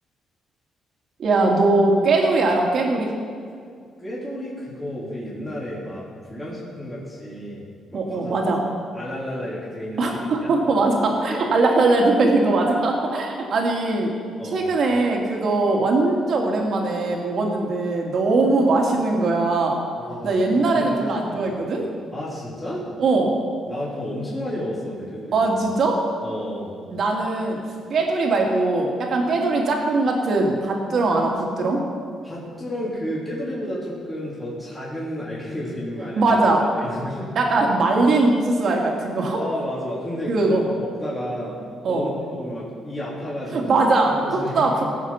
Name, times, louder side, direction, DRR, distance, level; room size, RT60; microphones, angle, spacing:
voice 1, 1.2-3.1 7.9-8.6 10.0-14.1 14.5-19.8 20.2-21.8 23.0-23.3 25.3-26.0 26.9-27.6 27.9-31.8 36.2-36.6 37.4-39.4 40.3-40.6 41.8-42.0 43.5-44.8, right 3 dB, 60° right, 0 dB, 2.6 m, -20 dB
voice 2, 4.0-6.0 6.3-8.3 8.9-10.5 11.3-11.4 12.7-12.8 14.4-14.7 20.0-20.4 20.8-20.9 21.3-21.5 22.1-22.8 23.7-25.5 26.2-26.7 32.2-36.4 36.8-37.3 39.2-40.3 40.7-43.7 44.2-44.8, equal, 10° left, -8 dB, 3.8 m, -32 dB
18.0 x 7.3 x 5.9 m, 2.2 s
cardioid pair, 90°, 0 cm